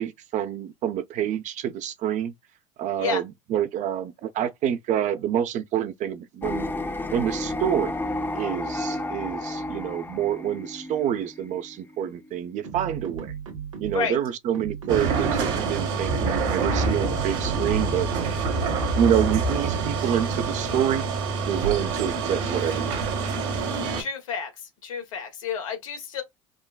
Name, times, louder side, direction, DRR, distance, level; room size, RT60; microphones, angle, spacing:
voice 1, 0.0-2.3 2.8-6.7 7.1-7.9 8.3-13.3 13.8-18.1 19.0-21.1 21.4-23.3, right 10 dB, 50° right, 0.6 m, -27 dB
sound 1, 6.4-12.7, left 2 dB, 10° left, 0.5 m, -32 dB
sound 2, 12.6-14.2 14.5-16.3 16.9-18.5 19.2-20.7, right 7 dB, 90° right, 0.9 m, -37 dB
sound 3, 14.9-24.0, right 4 dB, 65° right, 1.1 m, -26 dB
voice 2, 24.0-24.5 24.8-26.2, left 7 dB, 80° left, 1.0 m, -30 dB
3.7 x 2.2 x 2.3 m
hypercardioid pair, 75°, 17 cm